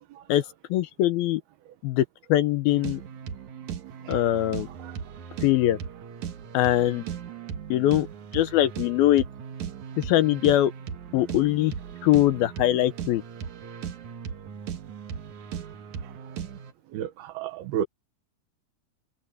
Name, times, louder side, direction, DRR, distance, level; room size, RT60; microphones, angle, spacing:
voice 1, 0.7-1.4 1.8-2.0 2.3-3.0 4.1-4.7 5.4-5.8 6.5-7.0 7.7-8.1 8.3-9.2 10.0-10.7 11.1-11.7 12.0-13.2, left 13 dB, 75° left, 2.7 m, -22 dB
sound 1, 2.7-16.7, right 7 dB, 60° right, 2.6 m, -38 dB
voice 2, 16.9-17.9, right 10 dB, 80° right, 3.3 m, -32 dB
omnidirectional pair, 4.4 m